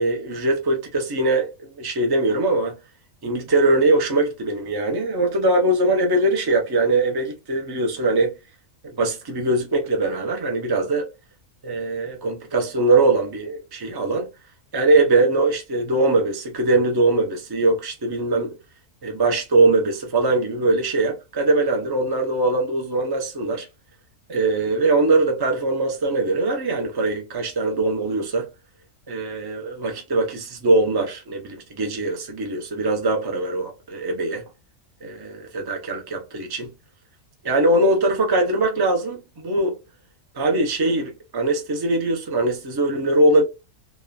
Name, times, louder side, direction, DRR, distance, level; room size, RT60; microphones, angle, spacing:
voice 1, 0.0-2.8 3.2-8.3 8.8-11.1 11.6-14.3 14.7-18.5 19.0-23.7 24.3-28.5 29.1-34.4 35.0-36.7 37.4-39.8 40.3-43.4, right 2 dB, 30° right, 0.4 m, -21 dB
3.1 x 2.2 x 2.3 m
omnidirectional pair, 1.5 m